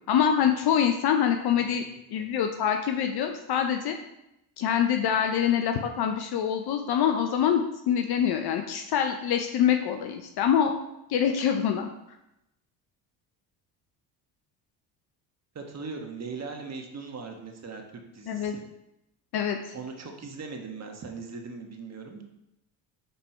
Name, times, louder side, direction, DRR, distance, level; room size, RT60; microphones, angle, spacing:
voice 1, 0.1-1.8 2.1-4.0 4.6-10.8 11.1-11.9 18.3-18.5 19.3-19.7, left 8 dB, 55° left, 5 dB, 0.7 m, -25 dB
voice 2, 15.5-17.8 18.1-18.6 19.7-22.3, right 4 dB, 35° right, 3 dB, 1.3 m, -39 dB
5.4 x 4.3 x 4.3 m, 0.85 s
supercardioid pair, 70°, 46 cm